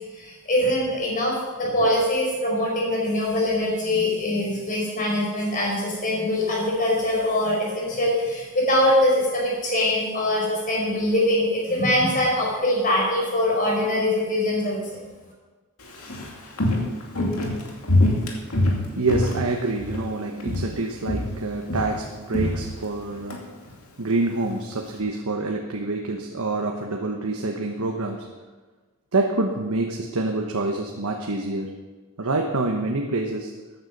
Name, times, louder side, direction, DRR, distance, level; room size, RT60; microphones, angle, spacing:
voice 1, 0.1-14.8, left 1 dB, 35° left, -3 dB, 5.2 m, -23 dB
Walk footsteps, 15.8-20.1 20.4-20.8 21.1-23.4 23.7-23.8, left 1 dB, 80° left, 2.5 m, -25 dB
voice 2, 18.6-23.4 24.0-28.3 29.1-31.8 32.2-33.6, right 2 dB, 75° right, 1 dB, 1.1 m, -27 dB
14.5 x 9.6 x 5.3 m, 1.3 s
head